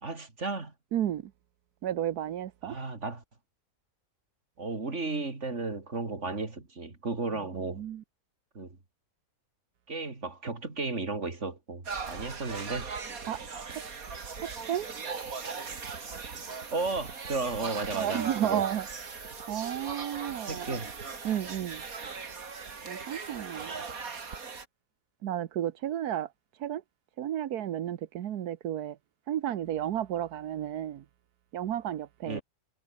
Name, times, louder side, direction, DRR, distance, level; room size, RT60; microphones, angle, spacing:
voice 1, 0.0-0.7 2.6-3.2 4.6-7.8 8.6-8.8 9.9-12.9 16.7-18.6 20.5-20.9 32.3-32.4, right 3 dB, 50° right, 3.6 m, -34 dB
voice 2, 0.9-1.3 1.8-2.8 7.6-8.0 13.3-13.4 13.7-13.8 14.4-14.9 17.9-18.9 19.5-20.8 21.2-21.8 22.8-23.7 25.2-26.3 26.6-26.8 27.2-29.0 29.3-31.0 31.5-32.4, right 11 dB, 85° right, 1.4 m, -32 dB
sound 1, 11.8-24.6, right 5 dB, 65° right, 2.7 m, -39 dB
omnidirectional pair, 1.6 m